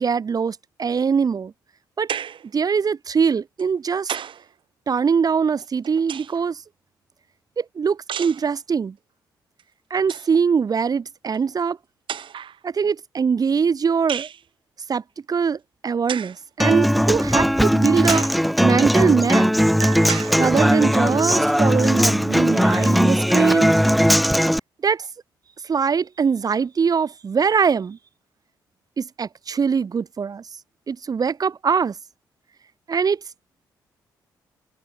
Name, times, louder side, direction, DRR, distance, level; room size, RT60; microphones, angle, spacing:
voice 1, 0.0-1.5 2.0-2.1 2.5-4.1 4.9-6.6 7.6-9.0 9.9-11.8 12.6-14.3 14.9-19.5 20.4-23.8 24.8-25.1 25.6-28.0 29.0-30.4 30.9-32.0 32.9-33.2, right 6 dB, 40° right, 0.8 m, -22 dB
sound 1, 2.1-2.5 3.6-4.5 5.6-6.5 8.1-8.5 9.6-9.7 10.0-10.4 11.3-11.4 12.1-12.6 14.1-14.4 16.1-16.4 17.1-17.2 18.1-18.4 19.1-19.2 20.1-20.4, right 8 dB, 55° right, 2.6 m, -32 dB
Human voice / Acoustic guitar, 16.6-24.6, equal, ahead, 0.5 m, -18 dB
sound 2, 19.8-21.3, right 33 dB, 80° right, 5.2 m, -39 dB
hypercardioid pair, 45°, 10 cm